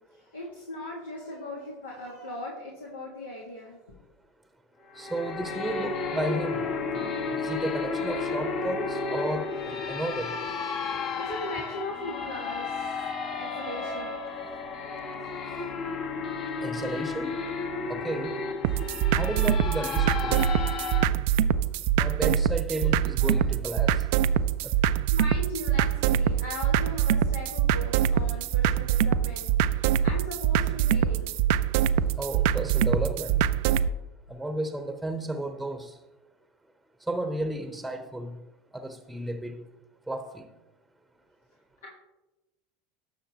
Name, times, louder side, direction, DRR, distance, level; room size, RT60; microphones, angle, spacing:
voice 1, 0.0-4.0 11.2-13.0 13.4-14.2 14.8-15.1 21.3-21.5 23.2-23.3 24.8-31.4, left 1 dB, 80° left, -3 dB, 1.6 m, -39 dB
sound 1, 4.9-21.1, left 4 dB, 50° left, 1.2 m, -32 dB
voice 2, 5.0-10.3 16.6-17.4 17.9-18.4 19.1-20.4 22.0-24.0 24.6-24.7 32.2-33.4 34.3-36.0 37.1-38.4 38.7-39.6 40.1-40.5, right 1 dB, 5° right, 7 dB, 0.9 m, -33 dB
sound 2, 18.6-33.9, right 9 dB, 60° right, 0.4 m, -24 dB
17.0 x 6.5 x 2.9 m, 1.0 s
figure-of-eight pair, 80°, 0 cm